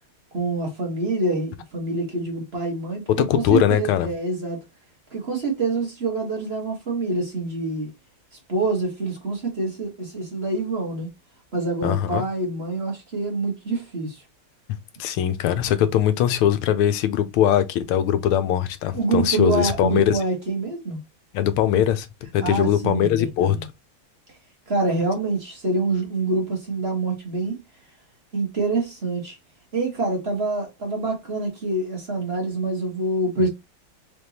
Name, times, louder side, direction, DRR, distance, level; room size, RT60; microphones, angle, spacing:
voice 1, 0.3-4.6 5.1-7.9 8.3-11.1 11.5-14.2 18.9-21.0 22.4-23.6 24.7-27.5 28.3-29.4 29.7-33.5, right 3 dB, 35° right, 1.2 m, -26 dB
voice 2, 3.3-4.1 11.8-12.2 15.0-20.2 21.3-22.1 22.3-23.6 33.4-33.5, left 10 dB, 90° left, 1.6 m, -21 dB
4.0 x 3.5 x 2.7 m
omnidirectional pair, 2.3 m